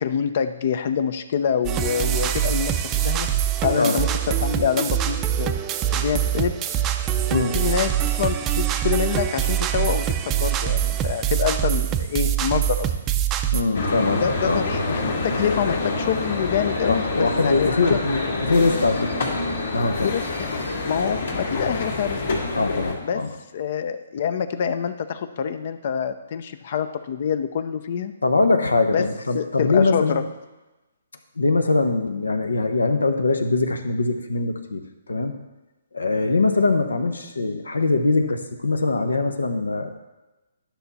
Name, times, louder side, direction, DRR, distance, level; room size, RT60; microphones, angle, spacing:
voice 1, 0.0-3.3 3.6-5.5 5.9-6.6 7.3-12.9 14.2-18.0 20.0-20.5 20.8-22.2 23.0-23.2 23.5-28.1 28.9-29.1 29.3-30.2, left 7 dB, 50° left, 11 dB, 0.6 m, -26 dB
sound 1, 1.6-13.6, right 10 dB, 20° right, 0.5 m, -24 dB
voice 2, 13.5-14.6 16.9-19.1 19.7-20.1 22.5-23.3 28.2-30.2 31.4-35.3 35.9-40.0, left 3 dB, 90° left, 7 dB, 0.9 m, -22 dB
sound 2, 13.7-22.9, left 2 dB, 70° left, 2.3 m, -26 dB
11.0 x 5.8 x 4.1 m, 1.1 s
hypercardioid pair, 140°, 0 cm